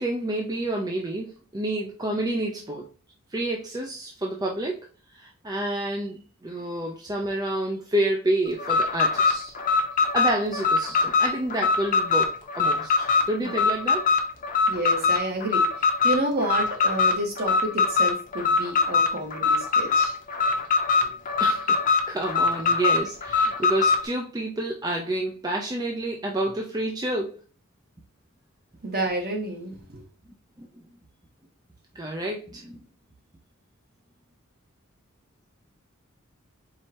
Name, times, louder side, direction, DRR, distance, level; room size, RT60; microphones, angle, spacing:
voice 1, 0.0-2.9 3.3-4.8 5.1-9.5 10.1-14.1 21.4-21.8 22.1-27.4 30.6-30.7 31.9-32.8, right 1 dB, 20° right, 0 dB, 0.5 m, -29 dB
Alarm, 8.6-24.1, left 4 dB, 40° left, 0.8 m, -22 dB
voice 2, 14.7-20.2 20.5-20.6 21.0-21.1 28.8-30.0, right 1 dB, 50° right, 1 dB, 1.3 m, -30 dB
4.7 x 3.3 x 2.9 m, 0.34 s
head